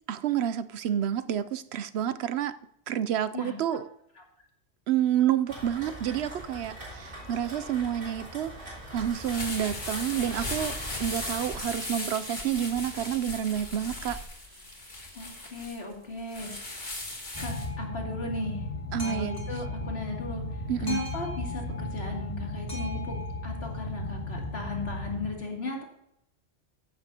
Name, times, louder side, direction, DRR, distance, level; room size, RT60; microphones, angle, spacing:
voice 1, 0.1-2.5 2.9-3.8 4.9-8.5 8.9-14.2 18.9-19.4 20.7-21.0 22.2-22.3, right 10 dB, 70° right, 0.8 m, -29 dB
Rain, 5.5-11.6, right 1 dB, 45° right, 4.9 m, -43 dB
sound 1, 8.6-17.7, left 2 dB, 45° left, 2.5 m, -37 dB
voice 2, 15.1-16.5 17.4-18.6 19.0-20.4 20.8-23.2 23.4-25.8, left 2 dB, 65° left, 2.9 m, -36 dB
Boat Water vehicle, 17.3-25.3, left 1 dB, 30° left, 2.0 m, -35 dB
14.5 x 12.0 x 2.8 m
omnidirectional pair, 1.2 m